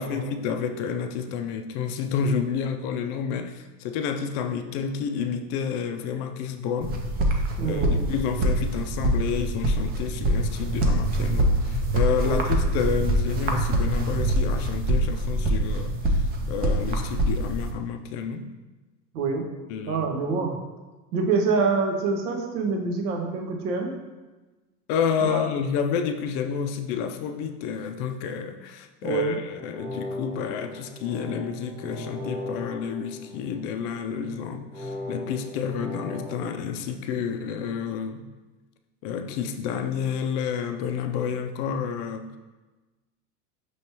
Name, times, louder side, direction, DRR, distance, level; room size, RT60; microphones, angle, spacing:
voice 1, 0.0-7.0 7.6-18.5 19.7-20.0 24.9-38.3 39.0-42.4, left 7 dB, 40° left, 7 dB, 0.4 m, -30 dB
sound 1, 6.8-17.7, right 1 dB, 20° right, 0.4 m, -24 dB
voice 2, 7.6-8.0 12.2-12.5 19.1-19.4 19.9-20.6 21.1-23.9 25.2-25.5 29.0-29.4, right 4 dB, 65° right, 1 dB, 1.0 m, -26 dB
sound 2, 29.5-33.8 34.7-36.5, left 2 dB, 5° right, 1.0 m, -37 dB
5.2 x 3.1 x 2.9 m, 1.2 s
hypercardioid pair, 100°, 48 cm